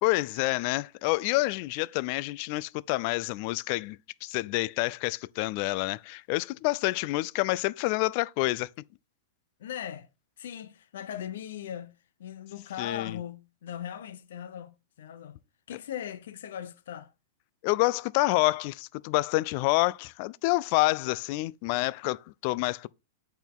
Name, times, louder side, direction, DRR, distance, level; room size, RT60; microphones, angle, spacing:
voice 1, 0.0-8.7 12.8-13.2 17.6-22.9, left 20 dB, 45° left, 0.3 m, -28 dB
voice 2, 9.6-10.1 10.4-15.4 15.7-17.1, left 9 dB, 70° left, 0.7 m, -39 dB
8.1 x 4.5 x 3.6 m
supercardioid pair, 150°, 0 cm